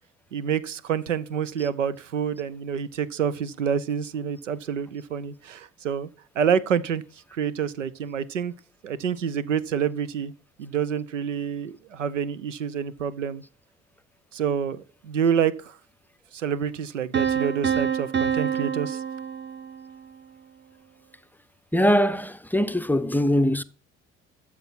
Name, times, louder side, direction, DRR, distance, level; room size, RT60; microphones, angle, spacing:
voice 1, 0.3-6.1 6.3-7.0 7.3-8.5 8.8-10.3 10.6-13.4 14.3-15.8 16.3-19.0, right 7 dB, 90° right, 0.6 m, -27 dB
Piano, 17.1-20.0, right 8 dB, 30° right, 0.9 m, -27 dB
voice 2, 21.7-23.6, equal, 5° left, 0.6 m, -22 dB
12.5 x 7.0 x 4.2 m
figure-of-eight pair, 50°, 36 cm